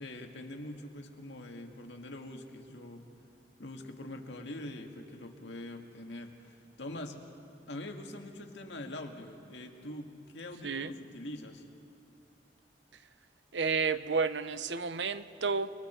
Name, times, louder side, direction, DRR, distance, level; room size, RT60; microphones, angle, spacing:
voice 1, 0.0-3.1 3.6-7.2 7.7-11.6, left 1 dB, 80° left, 3 dB, 1.9 m, -44 dB
voice 2, 13.5-15.7, right 5 dB, 85° right, 12 dB, 0.8 m, -31 dB
30.0 x 22.0 x 4.5 m, 2.6 s
head